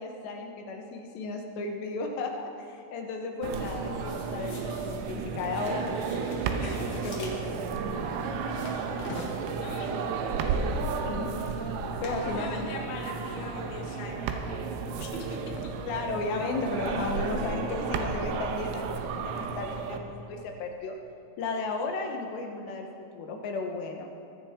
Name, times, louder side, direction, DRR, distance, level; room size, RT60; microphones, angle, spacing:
voice 1, 0.0-6.2 6.8-7.5 9.1-9.2 11.0-11.3 12.0-12.7 15.8-21.0 21.4-24.1, left 3 dB, 70° left, 2 dB, 2.8 m, -34 dB
sound 1, 3.4-12.2, left 3 dB, 50° left, 2.6 m, -48 dB
sound 2, 3.4-20.0, right 5 dB, 85° right, 3.7 m, -32 dB
voice 2, 9.5-10.2 12.1-14.5 15.0-15.6, left 3 dB, 90° left, -1 dB, 1.1 m, -41 dB
21.5 x 16.5 x 3.7 m, 2.6 s
omnidirectional pair, 5.9 m